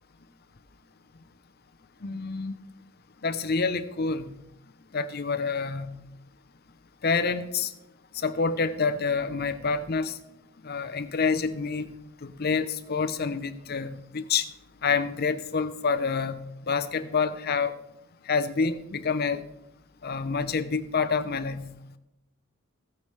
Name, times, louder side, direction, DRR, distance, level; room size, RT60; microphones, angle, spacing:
voice 1, 2.0-2.5 3.2-4.3 4.9-6.0 7.0-7.7 8.1-10.1 10.6-11.9 12.2-14.5 14.8-16.4 16.7-17.8 18.3-19.4 20.0-21.7, left 5 dB, 50° left, 11 dB, 0.7 m, -27 dB
15.5 x 8.6 x 3.3 m, 0.89 s
head